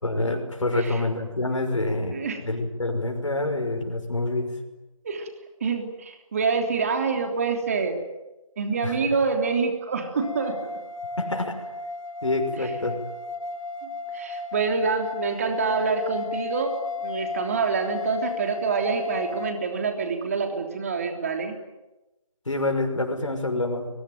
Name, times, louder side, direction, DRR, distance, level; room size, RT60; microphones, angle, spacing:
voice 1, 0.0-4.5 8.8-9.0 11.2-11.6 12.2-13.0 22.5-23.9, left 2 dB, 65° left, 4 dB, 5.8 m, -27 dB
voice 2, 5.6-8.0 8.6-10.6 13.8-21.6, right 5 dB, 25° right, 5 dB, 3.3 m, -26 dB
sound 1, 10.2-19.5, left 3 dB, 90° left, 4.9 m, -34 dB
27.5 x 22.5 x 9.3 m, 1.0 s
figure-of-eight pair, 160°, 17 cm